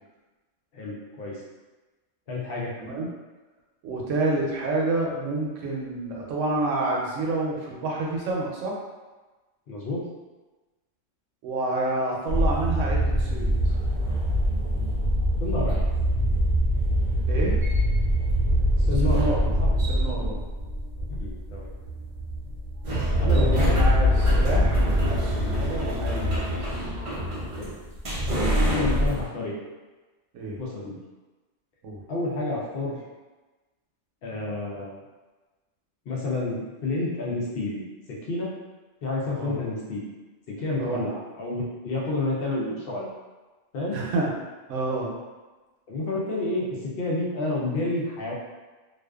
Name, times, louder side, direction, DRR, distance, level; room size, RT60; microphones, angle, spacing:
voice 1, 0.7-1.4 2.3-2.7 9.7-10.0 15.4-15.9 18.8-19.3 19.6-19.7 21.1-21.7 23.2-23.8 25.7-25.9 27.6-27.7 28.7-29.5 30.6-31.0 32.1-33.0 34.2-35.0 36.1-37.8 38.2-38.5 39.0-40.0 40.5-43.1 43.7-44.0 45.9-48.3, left 2 dB, 60° left, -4 dB, 0.7 m, -29 dB
voice 2, 3.8-8.7 11.4-13.8 17.3-17.6 19.0-19.5 19.9-20.4 23.3-26.4 30.3-30.6 31.8-32.0 39.4-39.6 40.8-41.0 43.9-44.3 44.7-45.1, right 2 dB, 80° right, -2 dB, 0.9 m, -28 dB
Entering a building riding an elevator, 12.3-29.2, equal, 55° right, 0.3 m, -24 dB
2.4 x 2.4 x 2.3 m, 1.2 s
omnidirectional pair, 1.3 m